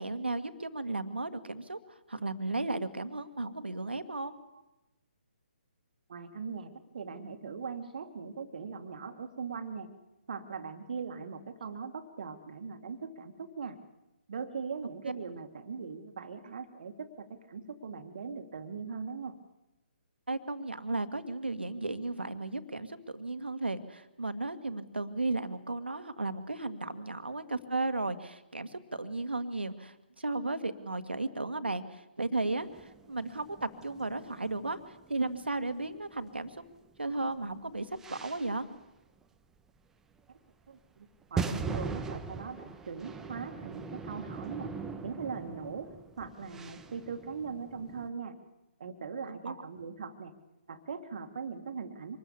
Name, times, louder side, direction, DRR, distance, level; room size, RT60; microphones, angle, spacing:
voice 1, 0.0-1.8 2.1-4.4 20.3-36.6 37.0-38.7 49.3-49.6, right 2 dB, 75° right, 9 dB, 1.8 m, -35 dB
voice 2, 6.1-9.9 10.3-13.8 14.3-19.4 40.7-44.7 45.0-45.9 46.2-48.4 48.8-50.3 50.7-52.2, right 5 dB, 50° right, 7 dB, 1.9 m, -40 dB
sound 1, 32.6-36.7 37.0-38.7 39.2-39.3 40.2-40.3 41.2-48.1, right 5 dB, 5° right, 1.0 m, -41 dB
25.5 x 20.5 x 7.0 m, 0.94 s
figure-of-eight pair, 135°, 6 cm